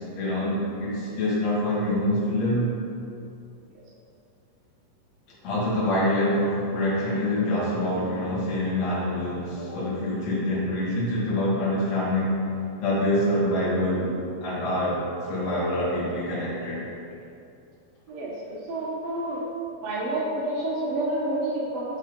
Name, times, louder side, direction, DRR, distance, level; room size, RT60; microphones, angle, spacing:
voice 1, 0.0-2.7 5.4-12.4 12.8-14.1 14.4-15.0 15.3-16.8, left 1 dB, 55° left, -8 dB, 3.1 m, -25 dB
voice 2, 18.1-19.4 19.8-21.8, right 1 dB, 65° right, -6 dB, 1.8 m, -29 dB
6.7 x 6.1 x 5.3 m, 2.6 s
omnidirectional pair, 4.0 m